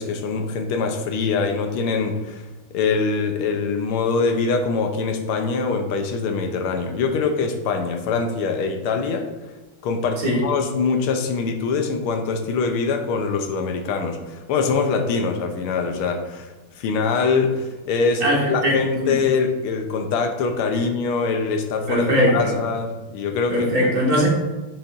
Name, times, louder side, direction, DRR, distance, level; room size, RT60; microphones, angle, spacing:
voice 1, 0.0-2.4 2.7-9.3 9.8-22.0 22.3-23.7, left 4 dB, 85° left, 5 dB, 1.6 m, -23 dB
voice 2, 18.2-19.1 21.9-22.6 23.5-24.3, equal, 45° right, -3 dB, 1.7 m, -20 dB
6.9 x 6.0 x 2.6 m, 1.1 s
omnidirectional pair, 2.3 m